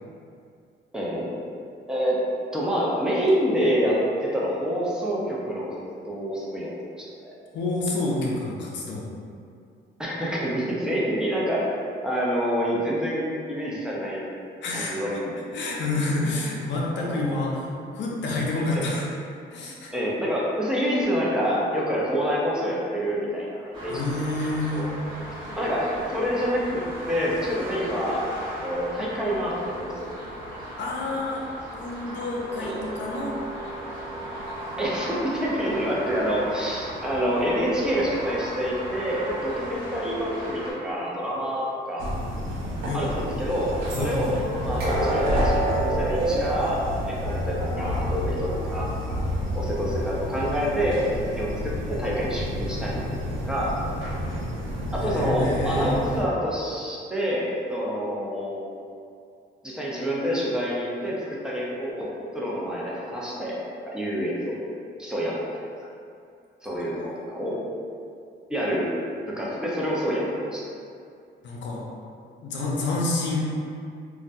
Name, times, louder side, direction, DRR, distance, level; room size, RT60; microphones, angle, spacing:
voice 1, 0.9-1.4 1.9-2.2 2.5-5.7 6.1-6.7 7.0-7.3 10.0-11.8 12.0-14.2 14.7-15.3 16.9-17.4 18.7-18.8 19.9-24.0 24.7-24.9 25.5-30.1 32.6-32.7 34.8-42.2 42.9-49.2 49.5-51.1 51.3-53.0 53.5-53.7 54.9-58.6 59.6-63.6 63.8-64.7 65.0-65.6 66.6-67.0 67.3-67.6 68.5-68.9 69.3-70.7, equal, 5° right, -6 dB, 0.5 m, -27 dB
voice 2, 7.5-9.1 14.6-15.0 15.5-19.1 19.5-19.9 23.9-24.9 30.8-31.4 31.8-33.3 42.9-43.0 43.9-44.3 55.0-56.0 66.8-67.5 71.4-71.8 72.4-73.5, left 2 dB, 65° left, -3 dB, 0.5 m, -28 dB
sound 1, 23.7-40.7, right 1 dB, 25° right, 1.0 m, -37 dB
sound 2, 32.3-35.5 44.8-48.7 49.1-49.3 49.9-50.0, right 1 dB, 50° right, 0.8 m, -30 dB
sound 3, 42.0-56.2, equal, 75° right, 0.5 m, -30 dB
2.2 x 2.1 x 2.6 m, 2.4 s
cardioid pair, 90°, 20 cm